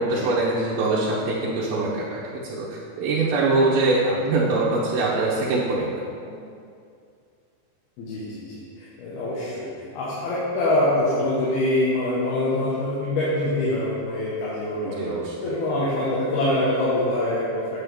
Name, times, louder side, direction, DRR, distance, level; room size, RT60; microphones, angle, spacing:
voice 1, 0.0-5.9 6.3-6.4 14.8-15.3, right 2 dB, 75° right, -8 dB, 2.7 m, -23 dB
voice 2, 8.0-9.7 9.9-15.2 15.4-17.8, left 1 dB, 75° left, -8 dB, 3.1 m, -24 dB
8.5 x 8.1 x 3.5 m, 2.4 s
omnidirectional pair, 4.6 m